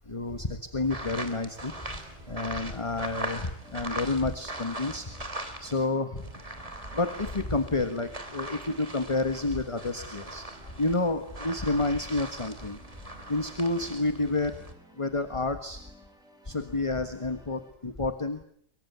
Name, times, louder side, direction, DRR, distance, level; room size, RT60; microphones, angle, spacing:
voice 1, 0.1-5.1 5.6-6.4 6.9-10.4 10.8-12.8 13.3-14.6 14.9-15.8 16.4-18.4, left 2 dB, 20° left, 9 dB, 1.3 m, -30 dB
sound 1, 0.8-5.9 6.2-14.7, right 1 dB, 20° right, 3.0 m, -40 dB
sound 2, 1.6-17.7, equal, ahead, 4.9 m, -57 dB
24.5 x 23.0 x 9.4 m, 0.67 s
omnidirectional pair, 1.9 m